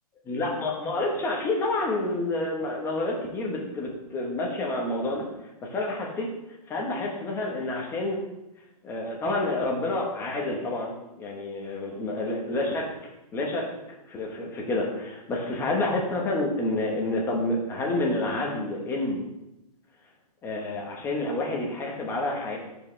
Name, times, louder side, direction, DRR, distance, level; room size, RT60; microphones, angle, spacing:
voice 1, 0.2-5.3 5.6-6.3 6.7-8.2 8.8-12.9 13.3-13.7 14.1-19.2 20.4-22.6, left 2 dB, 10° left, 0 dB, 1.1 m, -29 dB
13.0 x 4.9 x 3.3 m, 0.91 s
hypercardioid pair, 165°, 21 cm